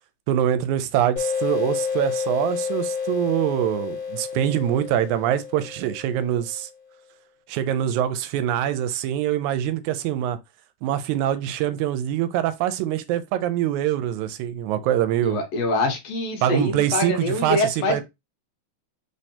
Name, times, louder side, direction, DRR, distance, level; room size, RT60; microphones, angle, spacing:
voice 1, 0.3-6.7 7.5-10.4 10.8-15.4 16.4-18.0, right 11 dB, 90° right, 1.9 m, -24 dB
sound 1, 1.2-6.5, left 6 dB, 55° left, 1.7 m, -29 dB
voice 2, 15.2-18.0, left 2 dB, 70° left, 1.8 m, -24 dB
4.3 x 3.2 x 2.7 m
omnidirectional pair, 3.3 m